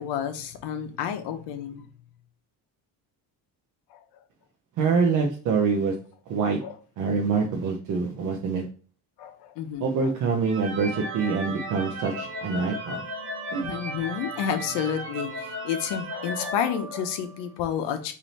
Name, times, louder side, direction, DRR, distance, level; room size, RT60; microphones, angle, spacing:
voice 1, 0.0-1.8 3.9-4.0 6.6-6.7 9.2-10.1 13.6-18.1, left 8 dB, 75° left, 0.8 m, -30 dB
voice 2, 4.8-5.9 6.3-6.6 7.0-8.6 9.8-13.0 13.5-13.7, right 5 dB, 50° right, 0.6 m, -25 dB
sound 1, 10.4-17.4, right 1 dB, 30° right, 1.0 m, -36 dB
3.3 x 2.8 x 4.0 m
cardioid pair, 180°, 41 cm